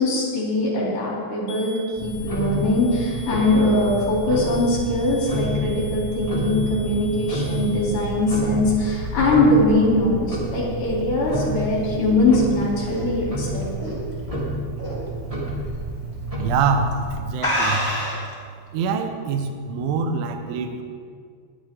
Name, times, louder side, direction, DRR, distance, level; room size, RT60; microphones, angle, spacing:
voice 1, 0.0-13.7, left 2 dB, 45° left, -5 dB, 4.7 m, -21 dB
sound 1, 1.5-8.1, left 1 dB, 65° left, 4.0 m, -43 dB
Tick-tock, 1.9-17.2, right 1 dB, 15° right, 1.4 m, -29 dB
sound 2, 11.2-14.4 14.8-15.1 15.5-15.6 16.4-16.6 16.9-17.0 17.4-18.3, equal, 10° left, 1.8 m, -27 dB
voice 2, 16.4-17.9 18.7-20.8, right 5 dB, 80° right, 6 dB, 3.3 m, -24 dB
20.5 x 9.4 x 3.8 m, 2.1 s
omnidirectional pair, 5.6 m